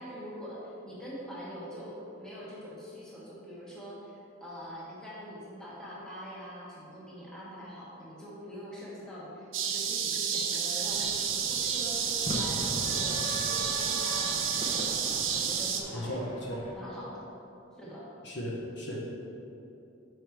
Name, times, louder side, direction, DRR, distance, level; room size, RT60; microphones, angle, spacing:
voice 1, 0.0-14.9 15.3-16.3 16.7-17.3 17.8-18.1, equal, 5° left, -8 dB, 1.3 m, -44 dB
sound 1, 9.5-15.8, right 7 dB, 70° right, 0.6 m, -30 dB
sound 2, 10.8-16.7, equal, 30° left, 0.9 m, -39 dB
voice 2, 18.2-19.0, equal, 55° left, -3 dB, 0.9 m, -36 dB
5.8 x 4.8 x 4.6 m, 2.8 s
head